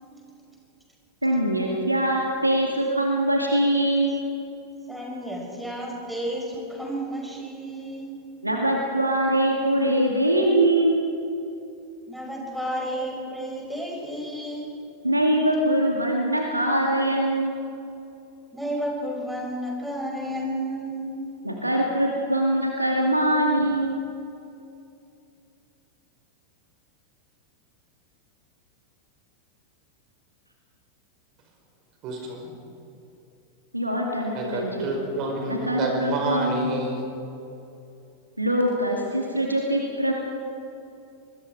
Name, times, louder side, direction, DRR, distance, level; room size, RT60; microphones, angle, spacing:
voice 1, 1.2-4.2 8.4-11.0 15.0-17.6 21.4-24.0 33.7-34.9 35.5-36.7 38.4-40.1, right 1 dB, 85° right, 0 dB, 2.3 m, -23 dB
voice 2, 4.9-8.1 12.1-14.7 18.5-21.3, equal, ahead, -1 dB, 5.9 m, -32 dB
voice 3, 32.0-32.5 34.3-37.1, right 2 dB, 40° right, 2 dB, 5.1 m, -29 dB
26.0 x 21.0 x 4.9 m, 2.7 s
figure-of-eight pair, 90°, 0 cm